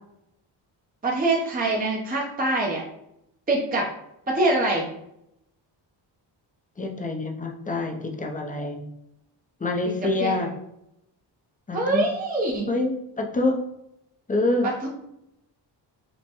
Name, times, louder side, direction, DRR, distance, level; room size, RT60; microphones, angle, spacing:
voice 1, 1.0-2.8 3.5-3.9 4.3-4.9 10.2-10.3 11.7-12.7 14.6-14.9, right 2 dB, 20° right, -2 dB, 0.7 m, -24 dB
voice 2, 6.8-8.9 9.6-10.5 11.7-12.1 12.7-13.6 14.3-14.7, left 2 dB, 15° left, 3 dB, 0.6 m, -26 dB
5.3 x 2.2 x 3.0 m, 0.81 s
cardioid pair, 85°, 47 cm